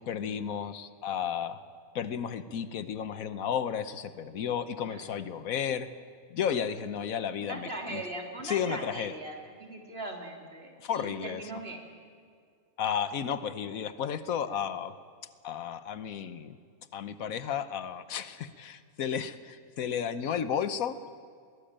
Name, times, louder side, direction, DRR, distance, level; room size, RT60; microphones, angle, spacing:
voice 1, 0.0-1.6 1.9-5.9 6.3-8.0 8.4-9.1 10.8-11.4 12.8-14.9 15.4-16.6 16.9-21.0, left 8 dB, 85° left, 13 dB, 1.3 m, -33 dB
voice 2, 7.4-11.8, right 1 dB, 45° right, 2 dB, 3.3 m, -40 dB
21.0 x 18.5 x 8.8 m, 2.1 s
omnidirectional pair, 1.4 m